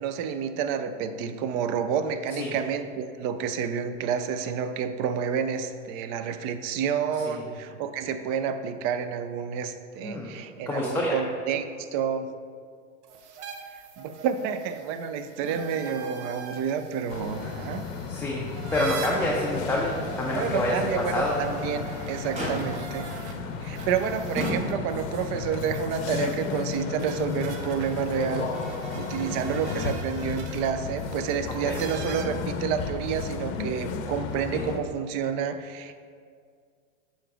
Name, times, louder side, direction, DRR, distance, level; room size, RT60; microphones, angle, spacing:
voice 1, 0.0-12.3 14.0-17.9 20.3-23.1 23.6-28.5 29.0-36.0, right 7 dB, 35° right, 9 dB, 0.4 m, -29 dB
voice 2, 10.7-11.2 18.1-18.4 18.7-21.4 26.1-26.3 29.2-29.4 31.6-31.8 34.5-34.6, left 1 dB, 5° left, -4 dB, 0.6 m, -28 dB
sound 1, 13.0-23.3 23.7-32.2, right 5 dB, 60° right, 0.9 m, -43 dB
Motor vehicle (road), 15.4-16.0 16.3-16.4 17.0-17.9 18.3-18.5 19.0-19.1 21.3-21.8 22.3-23.0 23.8-23.9 24.4-25.2 26.2-26.3, equal, 15° right, 1.4 m, -35 dB
sound 2, 17.1-34.8, left 5 dB, 55° left, 0.7 m, -34 dB
6.7 x 3.9 x 4.9 m, 2.1 s
hypercardioid pair, 110°, 39 cm